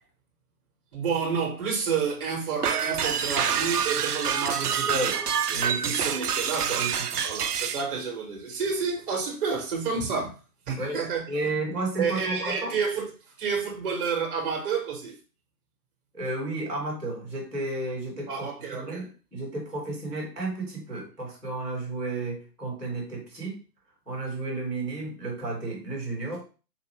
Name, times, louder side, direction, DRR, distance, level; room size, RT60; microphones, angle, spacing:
voice 1, 0.9-5.2 5.5-6.9 7.2-10.4 10.7-11.2 11.9-13.1 13.4-15.2 18.3-19.0, right 5 dB, 35° right, 1.4 m, -30 dB
sound 1, 2.6-7.9, right 8 dB, 75° right, 0.6 m, -27 dB
voice 2, 4.9-5.2 5.5-6.1 6.7-7.1 10.8-12.7 16.1-23.6 24.1-26.4, right 2 dB, ahead, 0.4 m, -32 dB
4.3 x 2.5 x 3.5 m
figure-of-eight pair, 135°, 47 cm